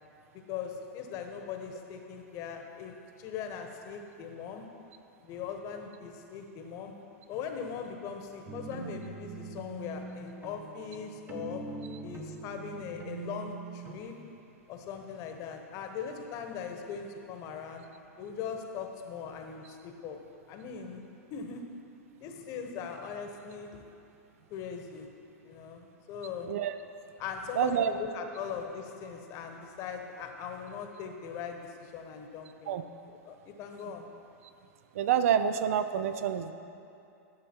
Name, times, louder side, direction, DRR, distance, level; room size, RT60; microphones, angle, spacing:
voice 1, 0.3-4.6 5.2-6.9 7.3-11.6 12.0-14.2 14.7-17.8 18.2-20.2 20.5-21.0 21.3-21.6 22.2-23.8 24.5-25.1 25.4-26.5 27.2-32.8 33.1-34.1, left 6 dB, 40° left, 4 dB, 1.1 m, -40 dB
sound 1, 8.5-14.0, right 4 dB, 20° right, 0.9 m, -43 dB
voice 2, 27.6-27.9 32.7-32.8 34.9-36.5, right 9 dB, 65° right, 10 dB, 0.5 m, -27 dB
12.0 x 6.5 x 4.5 m, 2.7 s
hypercardioid pair, 120°, 8 cm